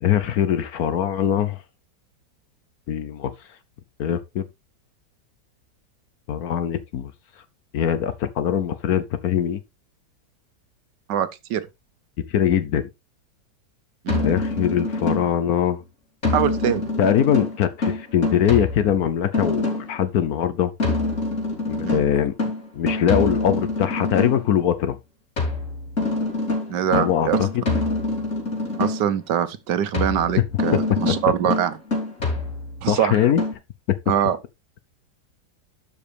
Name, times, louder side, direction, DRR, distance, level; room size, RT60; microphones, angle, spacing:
voice 1, 0.0-1.6 2.9-3.3 4.0-4.4 6.3-7.1 7.7-9.6 12.3-12.9 14.2-15.8 17.0-20.7 21.7-22.3 22.7-25.0 26.9-27.6 30.7-30.8 32.9-33.4 33.9-34.0, left 9 dB, 65° left, 1.1 m, -22 dB
voice 2, 11.1-11.6 14.0-14.3 16.3-16.8 21.8-22.0 26.7-27.4 28.8-31.8 32.8-33.2 34.1-34.4, right 9 dB, 75° right, 1.5 m, -23 dB
sound 1, 14.1-15.5 16.2-20.0 20.8-24.5 25.4-29.2 29.9-32.9 33.4-33.5, left 2 dB, 40° left, 3.4 m, -26 dB
11.5 x 5.3 x 3.4 m
omnidirectional pair, 1.9 m